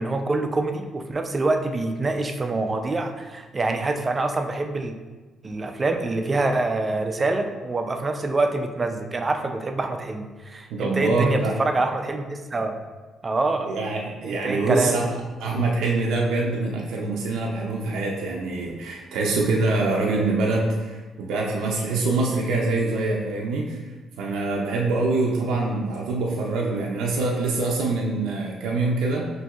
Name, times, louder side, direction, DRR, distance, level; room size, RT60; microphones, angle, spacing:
voice 1, 0.0-4.9 5.4-12.8 13.2-13.7 14.2-15.0, right 2 dB, 30° right, 5 dB, 0.4 m, -25 dB
voice 2, 10.7-11.6 13.6-15.1 15.4-23.8 24.2-29.3, right 3 dB, 85° right, -2 dB, 0.5 m, -24 dB
5.9 x 2.6 x 2.4 m, 1.3 s
cardioid pair, 90°, 0 cm